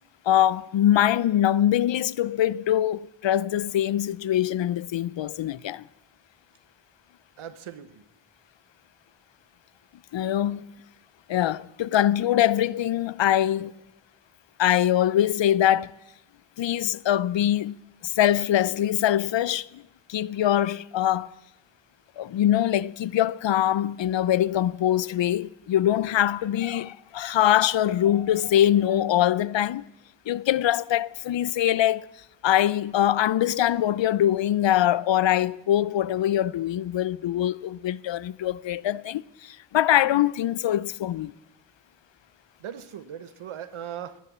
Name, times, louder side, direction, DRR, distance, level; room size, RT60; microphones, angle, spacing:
voice 1, 0.3-5.8 10.1-10.7 11.3-13.7 14.6-15.9 16.6-17.7 18.0-19.8 20.1-21.3 22.2-29.8 30.3-32.1 32.4-41.3, left 11 dB, 65° left, 0.6 m, -23 dB
voice 2, 7.4-8.0 42.6-44.2, right 9 dB, 90° right, 1.0 m, -38 dB
18.5 x 9.8 x 7.2 m
wide cardioid pair, 80°, 48 cm